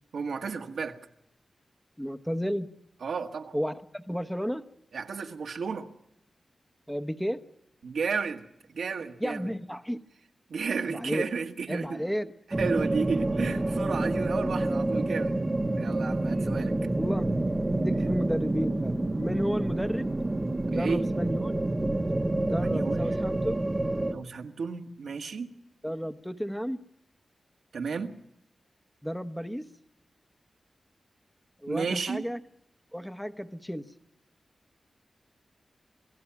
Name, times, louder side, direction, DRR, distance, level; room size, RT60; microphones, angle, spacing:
voice 1, 0.1-1.0 3.0-3.5 4.9-5.9 7.8-8.5 8.7-9.5 10.5-12.0 12.6-15.3 15.8-16.7 18.0-18.1 20.7-21.1 22.6-23.1 24.1-25.5 27.7-28.2 31.7-32.2, right 5 dB, 85° right, 1.6 m, -32 dB
voice 2, 2.0-2.8 3.5-4.6 6.9-7.4 9.2-10.0 10.9-11.3 11.7-12.3 14.4-14.5 17.0-17.3 17.7-20.1 20.6-21.5 22.4-23.5 25.8-26.8 29.0-29.7 31.6-32.4 32.9-33.9, equal, ahead, 0.9 m, -32 dB
sound 1, 12.5-24.1, right 2 dB, 20° right, 1.0 m, -28 dB
27.0 x 17.0 x 5.9 m
wide cardioid pair, 155°, 0 cm